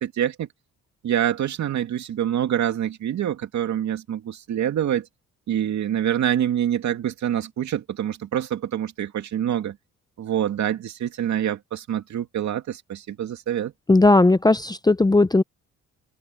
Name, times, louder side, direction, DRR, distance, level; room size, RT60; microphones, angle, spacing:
voice 1, 0.0-0.5 1.0-5.1 5.5-9.8 10.2-13.7, right 10 dB, 65° right, 2.6 m, -26 dB
voice 2, 13.9-15.4, left 2 dB, 15° left, 0.7 m, -17 dB
cardioid pair, 90°, 30 cm